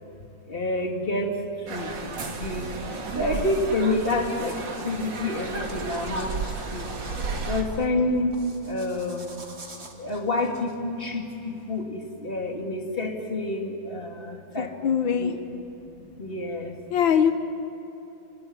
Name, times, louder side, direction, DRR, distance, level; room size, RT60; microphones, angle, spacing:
voice 1, 0.5-2.0 2.3-6.3 6.7-6.9 7.4-8.4 8.6-9.3 10.0-15.4 15.9-16.8, left 2 dB, 30° left, 2 dB, 2.8 m, -29 dB
sound 1, 1.7-7.6, right 4 dB, 70° right, 2.8 m, -33 dB
sound 2, 5.6-11.8, right 2 dB, 35° right, 2.6 m, -46 dB
voice 2, 14.6-15.3 16.9-17.3, left 8 dB, 80° left, 8 dB, 1.9 m, -22 dB
30.0 x 19.0 x 9.7 m, 2.9 s
omnidirectional pair, 2.1 m